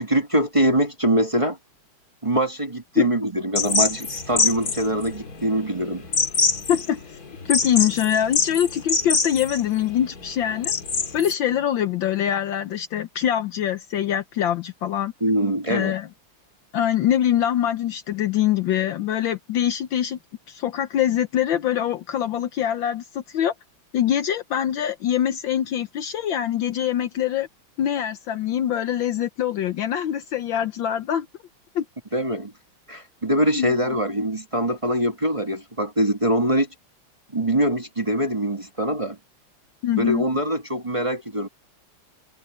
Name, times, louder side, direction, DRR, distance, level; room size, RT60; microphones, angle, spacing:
voice 1, 0.0-1.6 2.2-6.1 15.2-15.9 32.1-32.5 32.9-36.7 37.3-39.2 39.9-41.5, right 1 dB, 15° right, 1.7 m, -23 dB
sound 1, 3.5-11.3, left 4 dB, 45° left, 2.5 m, -25 dB
voice 2, 7.4-10.7 11.1-15.1 15.7-16.1 16.7-20.2 20.5-23.5 23.9-27.5 27.8-31.3 31.7-31.8 33.5-33.7 39.8-40.2, left 10 dB, 70° left, 1.5 m, -24 dB
omnidirectional pair, 2.3 m